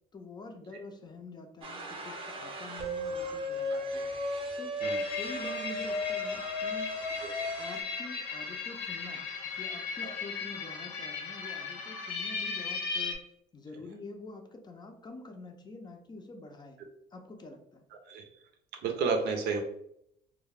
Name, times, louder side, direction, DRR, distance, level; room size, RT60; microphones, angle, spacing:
voice 1, 0.1-4.1 4.6-4.7 5.1-6.9 7.6-13.2 13.5-16.8 17.1-17.9, left 3 dB, 25° left, 5 dB, 0.4 m, -46 dB
sound 1, 1.6-7.8, left 1 dB, 30° right, 0.5 m, -35 dB
sound 2, 4.8-13.2, left 5 dB, 85° left, 0.6 m, -37 dB
voice 2, 18.8-19.6, right 4 dB, 80° right, 3 dB, 0.6 m, -31 dB
2.3 x 2.2 x 3.3 m, 0.73 s
cardioid pair, 110°, 17 cm